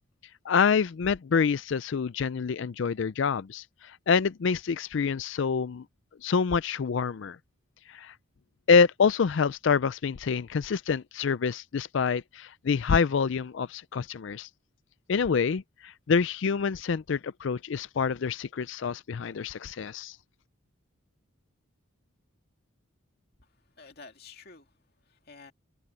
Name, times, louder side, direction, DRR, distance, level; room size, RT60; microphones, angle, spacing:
voice 1, 0.4-5.8 6.2-7.4 7.9-8.1 8.7-14.5 15.1-20.2, left 5 dB, 65° left, 0.4 m, -26 dB
voice 2, 23.4-25.5, left 4 dB, 50° left, 2.5 m, -51 dB
head